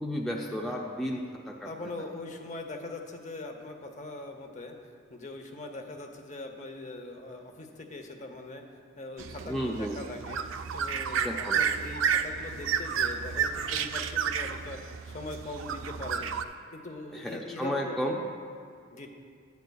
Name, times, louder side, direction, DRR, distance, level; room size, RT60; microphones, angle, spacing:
voice 1, 0.0-1.7 2.0-2.1 9.4-10.0 11.2-11.7 17.1-18.2, equal, ahead, -2 dB, 0.4 m, -33 dB
voice 2, 1.6-4.8 5.1-8.6 9.0-10.4 10.7-16.3 16.7-18.1 18.9-19.1, left 2 dB, 35° left, 4 dB, 0.7 m, -41 dB
sound 1, 9.2-16.4, right 7 dB, 70° right, 0.4 m, -31 dB
13.0 x 9.3 x 2.3 m, 2.3 s
head